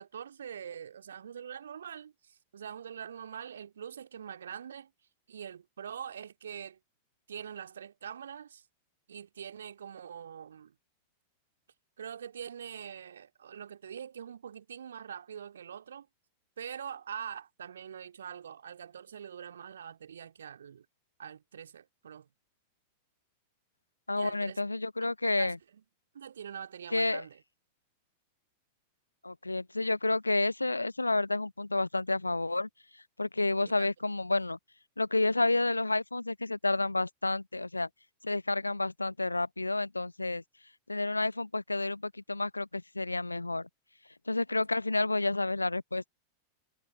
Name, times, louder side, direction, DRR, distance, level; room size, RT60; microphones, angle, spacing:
voice 1, 0.0-4.9 5.3-6.8 7.3-8.6 9.1-10.7 12.0-16.1 16.6-20.9 21.2-22.3 24.1-24.6 25.4-25.8 26.1-27.4 33.6-33.9, right 8 dB, 65° right, 2.6 m, -44 dB
voice 2, 24.1-25.6 26.9-27.2 29.2-32.7 33.2-34.6 35.0-37.9 38.2-40.4 40.9-43.7 44.3-46.1, left 2 dB, 85° left, 0.7 m, -30 dB
figure-of-eight pair, 90°, 0 cm